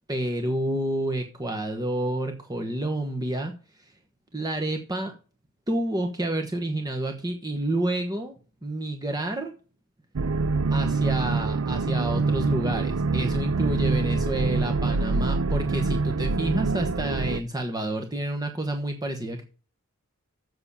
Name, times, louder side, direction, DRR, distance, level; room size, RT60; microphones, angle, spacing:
voice 1, 0.1-3.5 3.8-3.9 4.3-5.1 5.7-8.3 8.6-9.5 10.7-19.4, right 1 dB, 20° right, 4 dB, 1.2 m, -29 dB
sound 1, 10.2-17.4, right 3 dB, 65° right, 0.6 m, -25 dB
7.8 x 6.2 x 7.1 m, 0.36 s
head